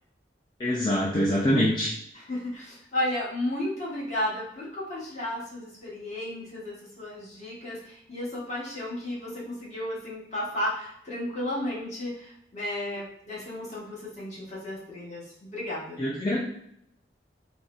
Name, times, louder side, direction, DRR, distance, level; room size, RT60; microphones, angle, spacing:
voice 1, 0.6-1.9 16.0-16.4, equal, 25° left, -5 dB, 0.4 m, -24 dB
voice 2, 2.1-16.0, left 1 dB, 40° left, -6 dB, 1.1 m, -33 dB
3.9 x 2.0 x 2.4 m, 0.71 s
head